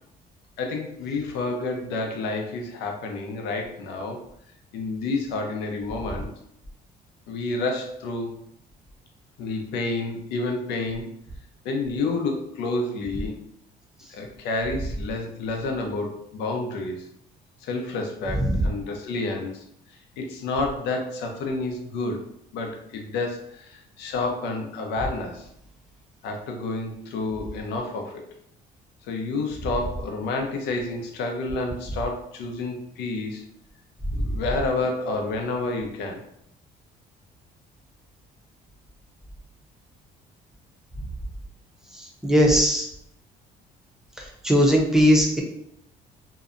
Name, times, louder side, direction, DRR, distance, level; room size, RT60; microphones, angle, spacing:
voice 1, 0.6-4.2 4.7-6.3 7.3-8.3 9.4-11.1 11.6-13.4 14.1-17.1 17.6-19.6 20.2-25.5 26.2-28.3 29.0-33.4 34.2-36.2, left 3 dB, 85° left, 3 dB, 0.6 m, -29 dB
voice 2, 42.2-42.9 44.4-45.4, equal, 5° right, -1 dB, 0.6 m, -18 dB
2.7 x 2.1 x 2.4 m, 0.73 s
cardioid pair, 110°, 17 cm